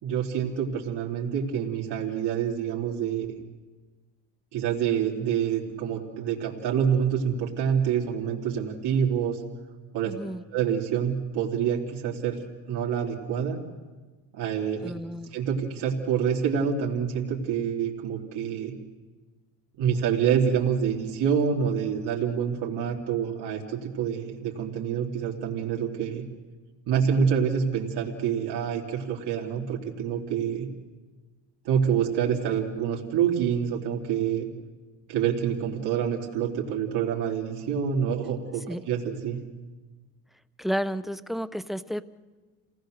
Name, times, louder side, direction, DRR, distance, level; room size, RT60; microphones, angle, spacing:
voice 1, 0.0-3.3 4.5-9.4 9.9-10.1 10.5-12.4 12.7-13.6 14.3-14.9 15.3-18.7 19.8-26.3 26.9-30.7 31.7-34.5 35.1-39.4, right 8 dB, 50° right, -2 dB, 3.4 m, -27 dB
voice 2, 10.0-10.4 14.8-15.3 38.7-38.8 40.6-42.0, equal, ahead, 15 dB, 0.6 m, -31 dB
29.0 x 18.5 x 6.6 m, 1.3 s
supercardioid pair, 105°, 50 cm